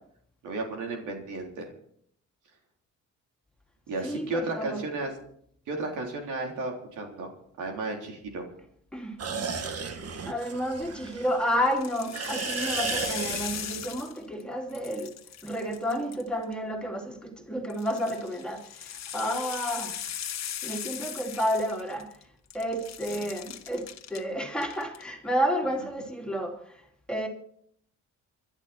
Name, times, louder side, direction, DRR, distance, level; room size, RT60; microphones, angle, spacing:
voice 1, 0.4-1.7 3.9-5.1 5.7-7.3 7.6-8.4 23.1-23.2, right 2 dB, 80° right, 3.7 m, -33 dB
voice 2, 4.0-4.8 8.9-9.2 9.8-9.9 10.2-15.1 15.4-20.0 20.6-22.1 22.5-26.8 27.1-27.3, equal, 5° left, 3.0 m, -31 dB
sound 1, 9.2-11.8 12.1-14.0, right 5 dB, 50° right, 1.7 m, -34 dB
sound 2, 10.8-11.2 11.7-14.4 14.7-16.5 17.7-22.2 22.5-24.2 24.6-25.0, left 10 dB, 60° left, 1.4 m, -38 dB
25.0 x 12.0 x 4.4 m
cardioid pair, 90°, 30 cm